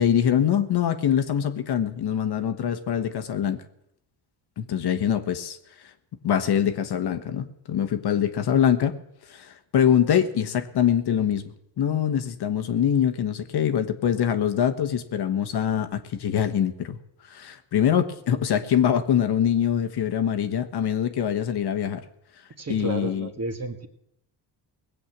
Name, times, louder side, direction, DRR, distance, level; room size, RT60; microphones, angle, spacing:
voice 1, 0.0-3.6 4.6-5.6 6.2-9.0 9.3-11.4 11.8-17.0 17.3-22.0 22.7-23.3, left 9 dB, 55° left, 8 dB, 1.3 m, -24 dB
voice 2, 22.6-23.9, right 2 dB, 30° right, 6 dB, 1.9 m, -32 dB
19.0 x 7.8 x 7.3 m, 0.80 s
supercardioid pair, 80°, 47 cm